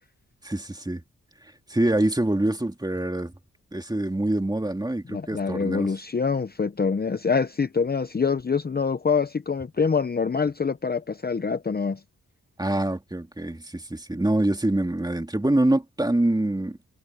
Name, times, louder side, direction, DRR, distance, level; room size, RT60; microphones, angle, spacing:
voice 1, 0.4-1.0 1.7-3.3 3.7-5.9 12.6-16.8, right 1 dB, 15° right, 2.6 m, -25 dB
voice 2, 5.1-12.0, left 5 dB, 30° left, 0.7 m, -25 dB
cardioid pair, 75°, 30 cm